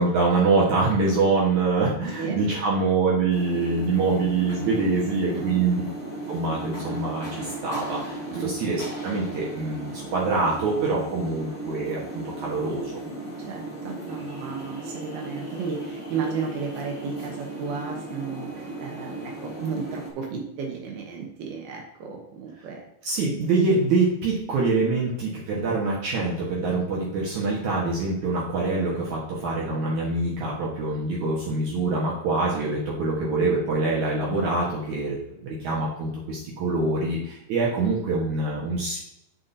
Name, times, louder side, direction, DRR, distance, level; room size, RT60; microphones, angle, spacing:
voice 1, 0.0-5.8 6.3-13.0 23.0-39.0, right 3 dB, 60° right, -4 dB, 2.3 m, -25 dB
sound 1, 3.3-20.1, right 2 dB, 30° left, 1.1 m, -36 dB
voice 2, 13.5-22.9, right 5 dB, 75° right, 1 dB, 2.9 m, -33 dB
7.6 x 7.5 x 2.7 m, 0.79 s
omnidirectional pair, 4.7 m